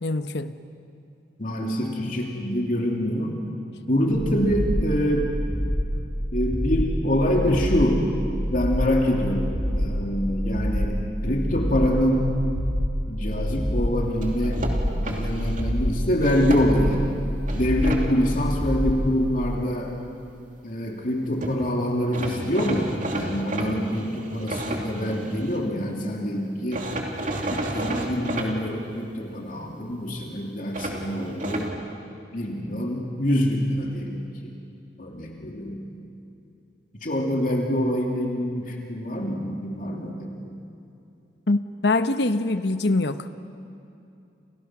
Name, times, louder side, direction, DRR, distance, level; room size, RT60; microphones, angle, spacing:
voice 1, 0.0-0.6 41.5-43.3, left 2 dB, 65° left, 10 dB, 1.0 m, -24 dB
voice 2, 1.4-3.4 3.9-5.3 6.3-8.1 8.5-12.3 13.1-14.6 15.0-17.0 17.5-19.9 20.6-26.9 27.5-31.7 32.3-34.5 35.0-35.8 37.0-40.5, equal, 45° left, 0 dB, 2.9 m, -25 dB
sound 1, 4.1-19.1, equal, 15° left, 4.2 m, -27 dB
sound 2, 14.2-15.7 16.2-17.0 17.5-18.0 21.1-21.2 21.4-21.6 22.1-25.6 26.7-28.5 30.7-31.7, right 1 dB, 45° right, 3.1 m, -31 dB
29.5 x 29.5 x 6.2 m, 2.7 s
head